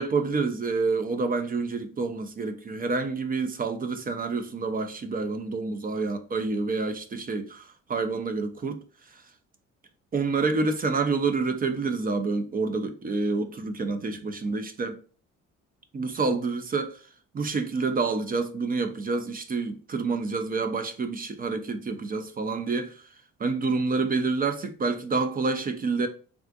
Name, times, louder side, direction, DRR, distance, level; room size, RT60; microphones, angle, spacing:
voice 1, 0.0-9.2 10.1-15.0 15.9-17.0 17.3-23.1 23.4-26.1, right 4 dB, 30° right, 0.4 m, -28 dB
3.6 x 2.4 x 2.3 m
cardioid pair, 90°, 30 cm